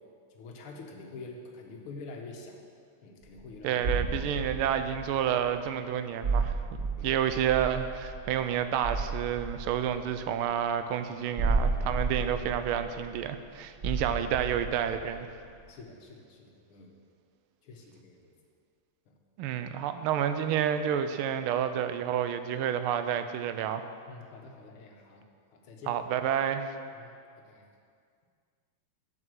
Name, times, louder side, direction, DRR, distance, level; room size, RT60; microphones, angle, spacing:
voice 1, 0.3-2.6 3.0-3.8 7.0-7.1 15.7-17.0 17.6-18.3 19.1-19.2 24.1-25.2 25.5-26.0 27.0-27.7, left 3 dB, 90° left, 1 dB, 1.9 m, -47 dB
sound 1, 3.2-3.4 3.8-5.5 6.2-10.4 11.4-13.4 13.8-15.5, right 3 dB, 40° right, 1.2 m, -32 dB
voice 2, 3.6-6.6 7.0-15.3 19.4-23.8 25.9-26.7, right 9 dB, 90° right, 10 dB, 1.5 m, -29 dB
7.8 x 5.9 x 7.5 m, 2.3 s
omnidirectional pair, 2.3 m